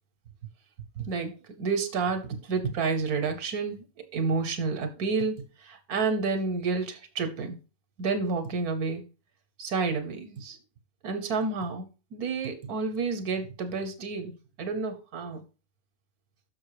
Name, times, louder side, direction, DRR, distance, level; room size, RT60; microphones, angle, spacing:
voice 1, 1.0-3.8 4.1-7.6 8.0-9.0 9.6-10.6 11.0-14.3 14.6-15.4, right 4 dB, 90° right, 1.5 m, -30 dB
6.5 x 5.8 x 4.9 m
omnidirectional pair, 1.5 m